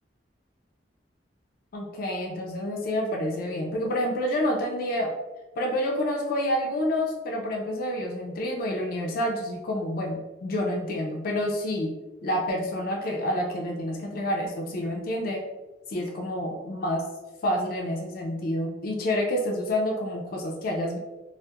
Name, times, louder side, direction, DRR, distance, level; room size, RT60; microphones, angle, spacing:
voice 1, 1.7-5.1 5.6-12.0 12.2-15.5 15.9-17.0 17.4-21.0, left 1 dB, 50° left, 0 dB, 0.3 m, -28 dB
2.2 x 2.0 x 2.8 m, 1.1 s
head